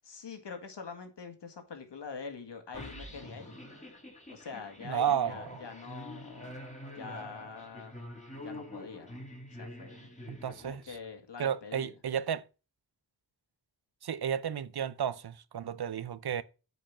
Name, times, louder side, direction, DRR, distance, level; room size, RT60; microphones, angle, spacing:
voice 1, 0.0-3.6 4.3-6.6 6.9-8.0 8.4-9.2 9.5-10.1 10.6-12.0, left 5 dB, 85° left, 2.1 m, -44 dB
sound 1, 2.7-11.0, left 1 dB, 15° left, 3.9 m, -46 dB
voice 2, 4.8-5.3 10.3-10.8 11.4-12.4 14.0-16.4, right 9 dB, 65° right, 0.7 m, -32 dB
9.2 x 5.0 x 7.3 m
cardioid pair, 45°, 41 cm